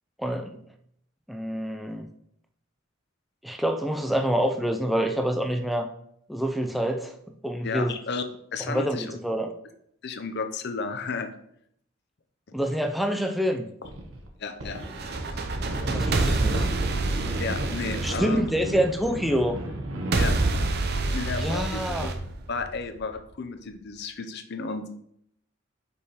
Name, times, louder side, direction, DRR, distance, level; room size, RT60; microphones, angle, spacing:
voice 1, 0.2-0.6 1.3-2.1 3.4-5.9 6.3-7.1 7.4-7.9 8.6-9.5 12.5-13.7 15.9-16.7 18.0-19.6 21.3-22.1, equal, ahead, 4 dB, 0.4 m, -27 dB
voice 2, 7.6-9.2 10.0-11.3 14.4-15.4 17.4-18.5 20.1-20.3 21.1-22.1 22.5-24.9, left 4 dB, 55° left, 7 dB, 0.7 m, -33 dB
sound 1, 13.8-14.3 14.6-21.9, right 1 dB, 85° right, 1.1 m, -35 dB
sound 2, 14.8-19.0 20.1-23.0, right 2 dB, 55° right, 0.7 m, -27 dB
5.5 x 4.8 x 4.3 m, 0.70 s
head